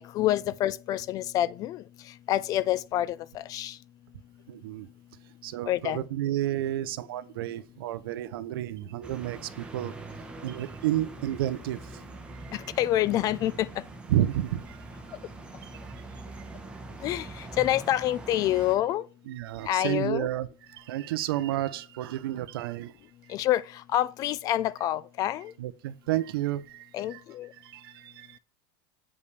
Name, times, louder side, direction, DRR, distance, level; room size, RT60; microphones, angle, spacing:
voice 1, 0.0-1.8 2.3-3.8 5.7-6.0 12.5-13.7 17.0-19.0 19.7-20.3 23.3-23.6 23.9-25.5 26.9-27.5, left 13 dB, 30° left, 0.4 m, -27 dB
voice 2, 4.5-4.9 5.4-9.9 10.4-11.9 12.4-12.5 14.1-14.8 15.6-15.7 19.3-22.9 25.6-27.2 27.6-28.4, right 13 dB, 90° right, 0.6 m, -31 dB
sound 1, 9.0-18.8, right 3 dB, 10° right, 1.0 m, -43 dB
8.1 x 5.3 x 3.3 m
supercardioid pair, 155°, 12 cm